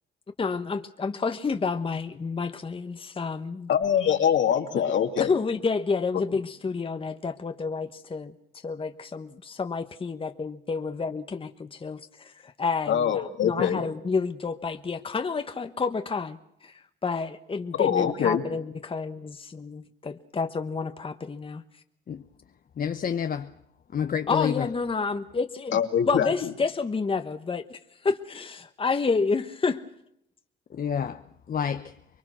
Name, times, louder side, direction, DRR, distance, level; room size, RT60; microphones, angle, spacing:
voice 1, 0.4-3.7 5.2-21.6 24.3-25.8 26.1-29.8, left 4 dB, 25° left, 1.1 m, -30 dB
voice 2, 3.7-5.3 12.9-13.8 17.8-18.4 25.7-26.3, left 8 dB, 70° left, 2.7 m, -23 dB
voice 3, 22.8-23.5 23.9-24.7 30.7-32.0, left 8 dB, 45° left, 0.9 m, -29 dB
24.5 x 22.0 x 6.2 m
cardioid pair, 90°, 20 cm